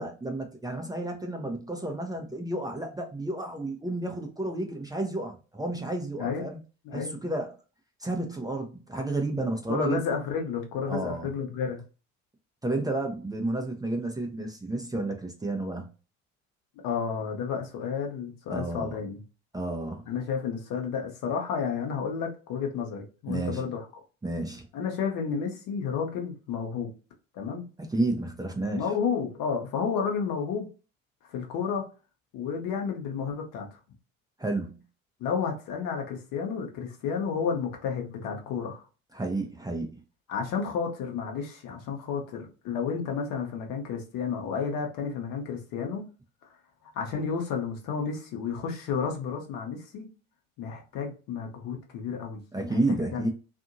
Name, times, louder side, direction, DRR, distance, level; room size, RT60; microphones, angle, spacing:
voice 1, 0.0-6.6 6.9-7.5 8.0-10.0 10.9-11.3 12.6-15.9 18.5-19.0 19.5-20.0 23.3-23.7 24.2-24.7 27.9-28.8 34.4-34.8 39.1-40.0 52.5-53.3, right 2 dB, 10° right, 0.6 m, -31 dB
voice 2, 9.7-11.8 16.8-19.2 20.1-23.9 24.7-26.9 27.3-27.6 28.7-30.7 31.3-31.8 32.3-33.7 35.2-38.8 40.3-46.0 46.9-50.1 50.6-52.4 52.7-53.3, left 6 dB, 60° left, 1.0 m, -31 dB
2.6 x 2.6 x 2.5 m
hypercardioid pair, 60°, 37 cm